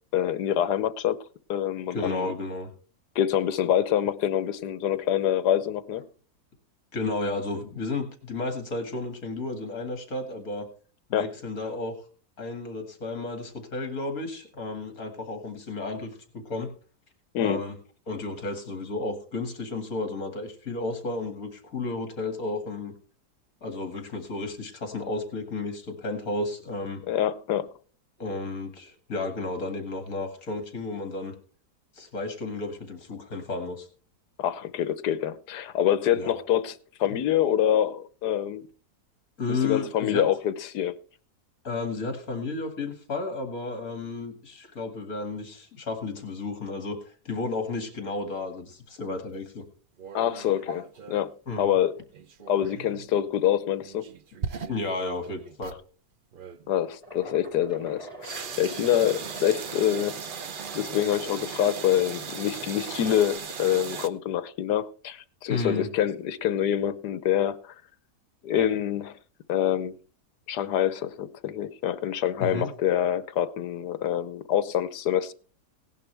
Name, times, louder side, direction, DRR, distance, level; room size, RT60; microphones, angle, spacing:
voice 1, 0.1-1.2 1.5-2.3 3.1-6.1 11.1-11.3 17.3-17.6 27.1-27.7 34.4-36.7 37.0-38.7 39.5-41.0 50.1-50.8 51.1-51.3 51.6-51.9 52.5-54.1 56.7-60.2 60.7-67.7 68.4-69.2 69.5-69.9 70.5-75.3, left 10 dB, 75° left, 1.4 m, -26 dB
voice 2, 1.9-2.7 6.9-10.7 11.1-12.0 12.4-16.7 17.4-17.8 18.1-22.9 23.6-27.0 28.2-31.4 31.9-33.9 36.1-36.4 37.1-37.2 39.4-40.3 41.6-49.6 50.7-50.8 51.5-51.7 54.7-55.7 57.2-57.3 65.5-65.9 72.4-72.7, left 3 dB, 55° left, 2.5 m, -32 dB
sound 1, 50.0-51.3 52.1-53.1 53.8-55.8 56.3-56.7 58.2-64.1, right 6 dB, 60° right, 0.5 m, -38 dB
sound 2, 57.0-63.4, right 2 dB, 20° left, 5.3 m, -45 dB
17.5 x 11.0 x 3.4 m
omnidirectional pair, 1.8 m